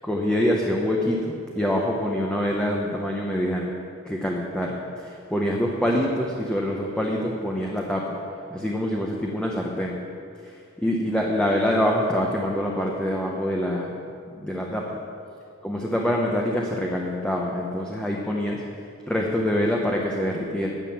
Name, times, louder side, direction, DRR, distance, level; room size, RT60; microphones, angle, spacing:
voice 1, 0.0-3.7 4.0-8.2 8.5-10.0 10.8-13.9 14.4-15.0 15.6-18.6 19.1-20.7, equal, 5° left, -2 dB, 0.8 m, -25 dB
11.0 x 6.7 x 7.2 m, 2.4 s
head